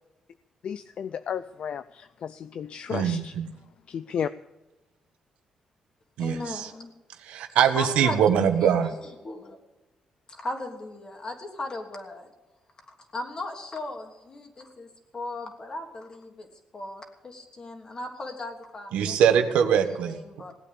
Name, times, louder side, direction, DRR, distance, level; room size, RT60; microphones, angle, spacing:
voice 1, 0.6-3.3 3.9-4.3, left 8 dB, 60° left, 14 dB, 0.5 m, -33 dB
voice 2, 2.9-3.5 6.2-6.7 7.2-8.9 18.9-20.2, right 8 dB, 90° right, 7 dB, 1.4 m, -23 dB
voice 3, 6.2-6.9 7.7-8.2 8.6-8.9 9.2-9.6 10.3-12.3 12.9-19.2 19.6-20.5, left 2 dB, 40° left, 3 dB, 3.1 m, -37 dB
17.5 x 8.7 x 8.5 m, 1.0 s
cardioid pair, 85°, 2 cm